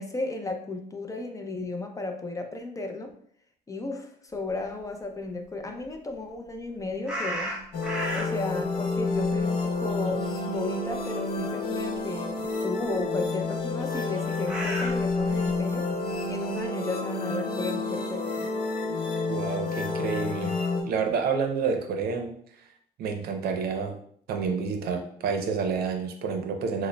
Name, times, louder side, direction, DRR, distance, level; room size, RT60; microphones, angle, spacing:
voice 1, 0.0-3.1 3.7-7.6 8.1-15.9 16.3-18.5, left 3 dB, 20° left, 4 dB, 0.4 m, -34 dB
sound 1, 7.1-8.5 8.9-10.6 10.9-11.1 11.9-12.0 13.8-15.6, right 1 dB, 5° right, 0.8 m, -34 dB
sound 2, 7.7-20.8, left 3 dB, 65° left, 0.9 m, -29 dB
voice 2, 19.3-20.6 20.9-22.3 23.0-24.0 24.3-26.9, right 5 dB, 70° right, 5 dB, 0.6 m, -29 dB
6.1 x 2.1 x 2.2 m, 0.62 s
cardioid pair, 110°, 17 cm